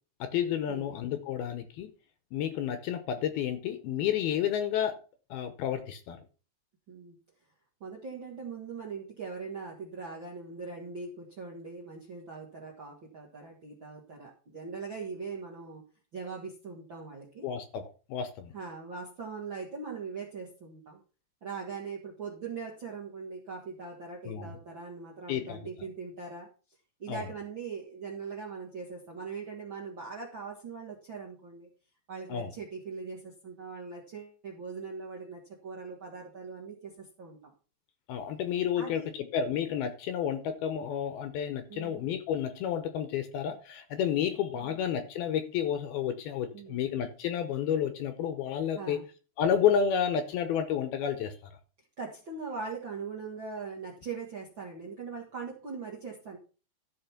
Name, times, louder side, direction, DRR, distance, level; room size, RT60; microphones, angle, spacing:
voice 1, 0.2-1.9 2.3-5.0 5.3-6.2 17.4-18.5 24.3-24.5 25.3-25.6 27.1-27.2 32.3-32.5 38.1-39.0 39.3-49.0 49.4-51.3, left 8 dB, 70° left, 9 dB, 2.6 m, -30 dB
voice 2, 7.8-15.8 16.1-17.5 18.5-21.0 21.4-26.5 27.0-31.7 32.1-37.5 38.8-39.1 41.7-42.0 44.5-44.8 46.5-46.8 48.7-49.1 52.0-56.4, right 5 dB, 55° right, -2 dB, 1.3 m, -41 dB
13.0 x 5.1 x 5.8 m, 0.36 s
omnidirectional pair, 5.0 m